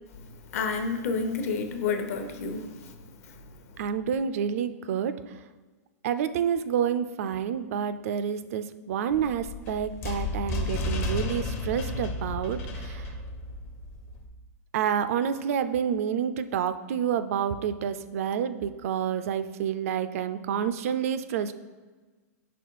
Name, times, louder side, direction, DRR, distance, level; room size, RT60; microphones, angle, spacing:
voice 1, 0.5-2.7, left 4 dB, 60° left, 6 dB, 0.8 m, -29 dB
voice 2, 3.8-5.1 6.0-13.0 14.7-21.5, right 8 dB, 55° right, 12 dB, 0.3 m, -28 dB
sound 1, 9.1-14.3, left 2 dB, 25° left, 0.5 m, -33 dB
5.2 x 4.0 x 4.6 m, 1.3 s
supercardioid pair, 160°, 9 cm